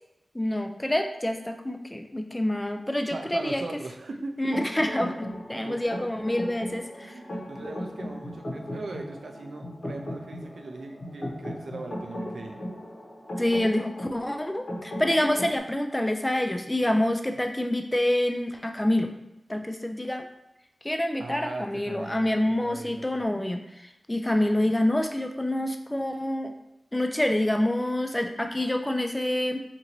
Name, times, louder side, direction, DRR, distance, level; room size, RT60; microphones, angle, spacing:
voice 1, 0.3-3.6 4.4-7.2 13.4-19.1 19.5-20.3 20.8-26.5 26.9-29.6, left 1 dB, 15° left, 5 dB, 0.3 m, -27 dB
voice 2, 3.1-4.4 5.6-5.8 7.0-12.6 21.2-23.2, right 3 dB, 85° right, 4 dB, 0.4 m, -39 dB
sound 1, 4.5-15.6, equal, 55° left, 0.9 m, -37 dB
3.9 x 2.5 x 3.0 m, 0.88 s
wide cardioid pair, 95°, 0 cm